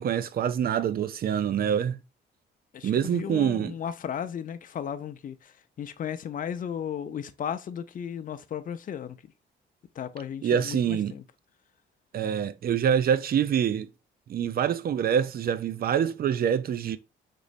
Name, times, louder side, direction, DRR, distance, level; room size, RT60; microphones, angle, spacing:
voice 1, 0.0-2.0 2.8-3.7 10.4-11.1 12.1-13.9 14.3-17.0, right 8 dB, 50° right, 0.5 m, -25 dB
voice 2, 2.7-9.2 9.9-11.2, left 8 dB, 45° left, 0.5 m, -35 dB
5.2 x 3.0 x 2.5 m
cardioid pair, 90°, 20 cm